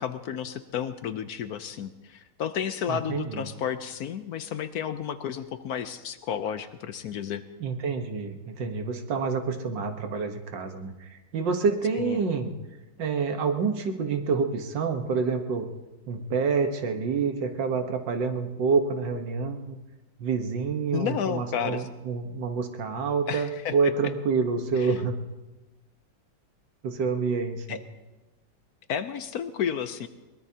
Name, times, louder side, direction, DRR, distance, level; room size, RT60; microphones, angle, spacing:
voice 1, 0.0-7.4 12.0-12.2 20.9-21.9 23.3-23.7 24.8-25.0 27.7-27.8 28.9-30.1, left 8 dB, 65° left, 11 dB, 1.0 m, -32 dB
voice 2, 2.9-3.5 7.6-12.5 13.0-15.7 16.1-19.8 20.2-25.2 26.8-27.8, right 5 dB, 75° right, 6 dB, 1.9 m, -28 dB
22.5 x 19.5 x 2.8 m, 1.1 s
omnidirectional pair, 2.0 m